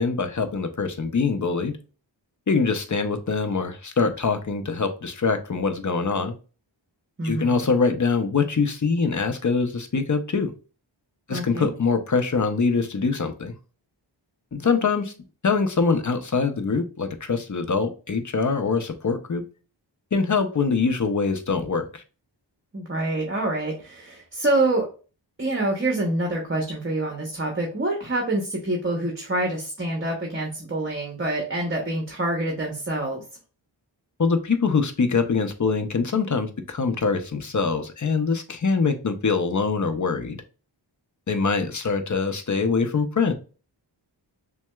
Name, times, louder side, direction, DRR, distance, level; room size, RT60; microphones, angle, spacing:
voice 1, 0.0-1.8 2.5-6.3 7.2-10.5 11.3-13.5 14.5-15.1 15.4-19.4 20.1-22.0 34.2-40.4 41.3-43.3, left 4 dB, 40° left, 8 dB, 0.6 m, -24 dB
voice 2, 7.2-7.6 11.3-11.7 22.7-24.9 25.4-33.2, right 2 dB, 25° right, 1 dB, 0.9 m, -26 dB
5.8 x 2.3 x 2.2 m, 0.35 s
wide cardioid pair, 70°, 46 cm